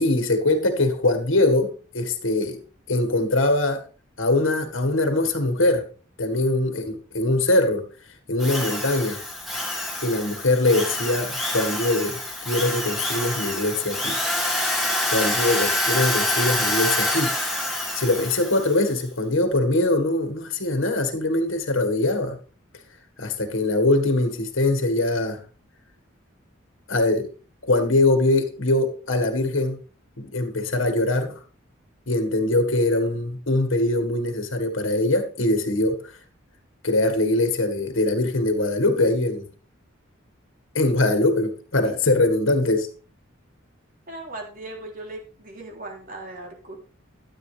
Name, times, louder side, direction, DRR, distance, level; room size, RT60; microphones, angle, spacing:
voice 1, 0.0-2.6 2.9-3.8 4.2-5.8 6.2-7.8 8.3-9.2 10.0-14.2 15.1-17.3 17.9-22.4 23.2-25.4 26.9-27.3 27.6-29.8 30.2-31.4 32.1-36.0 36.8-39.4 40.7-42.9, left 2 dB, 80° left, 1.8 m, -22 dB
Drill, 8.4-18.8, left 1 dB, ahead, 2.5 m, -26 dB
voice 2, 44.1-46.8, right 2 dB, 45° right, 3.4 m, -38 dB
13.0 x 8.8 x 3.4 m
head